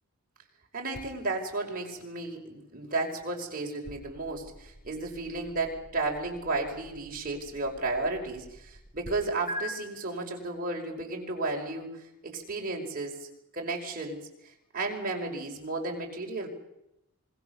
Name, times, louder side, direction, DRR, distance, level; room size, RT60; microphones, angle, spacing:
voice 1, 0.7-13.3 13.5-16.5, right 2 dB, 40° right, 0 dB, 5.3 m, -33 dB
sound 1, 0.9-9.1 9.5-9.6, equal, 35° left, 5.6 m, -47 dB
26.5 x 22.0 x 7.1 m, 0.86 s
head